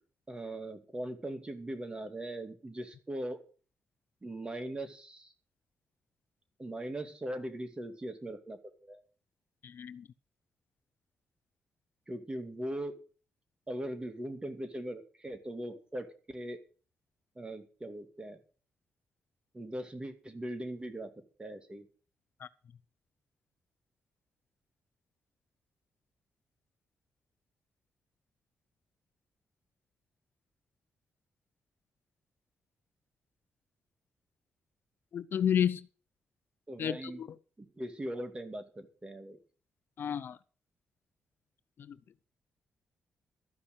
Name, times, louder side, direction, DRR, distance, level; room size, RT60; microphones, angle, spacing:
voice 1, 0.3-3.4 4.2-5.3 6.6-9.0 12.1-13.0 13.7-16.6 17.4-18.4 19.5-21.9 36.7-37.2 37.6-39.4, right 1 dB, 25° right, 2.4 m, -40 dB
voice 2, 9.6-10.1 22.4-22.5 35.1-35.9 36.8-37.3 40.0-40.4 41.8-42.0, left 9 dB, 65° left, 0.6 m, -31 dB
13.0 x 5.5 x 8.0 m
cardioid pair, 65°, 4 cm